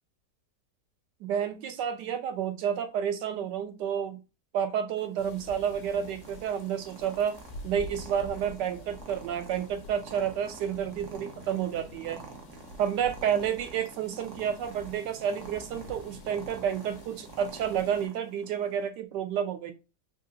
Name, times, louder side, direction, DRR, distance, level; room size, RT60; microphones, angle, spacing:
voice 1, 1.2-4.2 4.5-7.4 7.6-12.2 12.8-19.7, right 8 dB, 80° right, 7 dB, 1.3 m, -30 dB
Purr, 5.0-18.9, right 4 dB, 60° right, 0.8 m, -49 dB
sound 1, 5.2-18.1, left 1 dB, 85° left, 1.3 m, -48 dB
3.5 x 2.4 x 2.6 m, 0.27 s
omnidirectional pair, 1.8 m